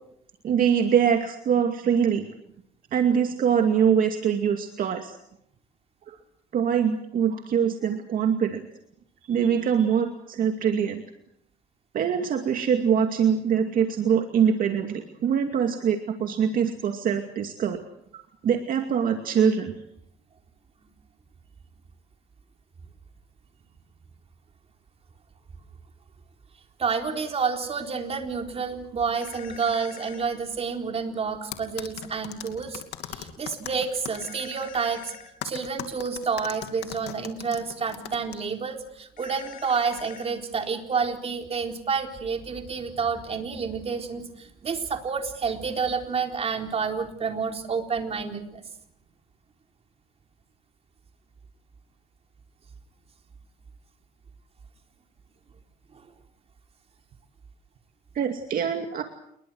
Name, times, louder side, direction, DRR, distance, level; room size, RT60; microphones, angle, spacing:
voice 1, 0.4-2.3 2.9-5.1 6.1-6.2 6.5-8.6 9.2-11.0 11.9-17.8 18.1-19.7 58.1-59.0, right 7 dB, 55° right, 5 dB, 2.5 m, -23 dB
voice 2, 26.8-32.8 33.1-35.1 35.4-48.6 55.9-56.0, right 5 dB, 35° right, 4 dB, 4.0 m, -29 dB
sound 1, 29.1-30.3 34.1-35.3 39.2-40.3, left 8 dB, 55° left, 4.7 m, -44 dB
sound 2, 31.5-34.3 35.4-38.3, left 12 dB, 80° left, 2.8 m, -38 dB
29.0 x 22.0 x 6.4 m, 0.73 s
cardioid pair, 110°, 17 cm